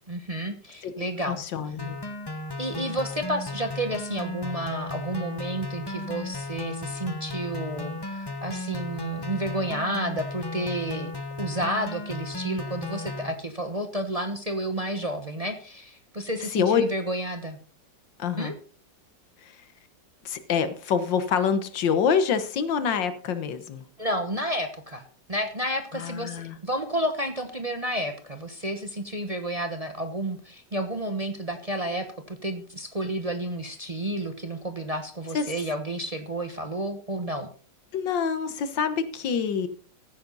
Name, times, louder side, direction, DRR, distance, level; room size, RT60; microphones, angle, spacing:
voice 1, 0.1-1.4 2.6-11.1 11.4-17.6 18.4-18.6 24.0-25.0 25.3-37.5, right 1 dB, 25° right, 6 dB, 0.9 m, -31 dB
voice 2, 1.3-2.0 16.5-16.8 18.2-18.5 19.4-19.6 20.3-23.8 25.9-26.6 35.3-35.4 37.9-39.7, left 7 dB, 80° left, 12 dB, 1.8 m, -26 dB
sound 1, 1.8-13.3, left 2 dB, 20° left, 0.8 m, -35 dB
15.0 x 9.4 x 4.0 m, 0.41 s
omnidirectional pair, 2.0 m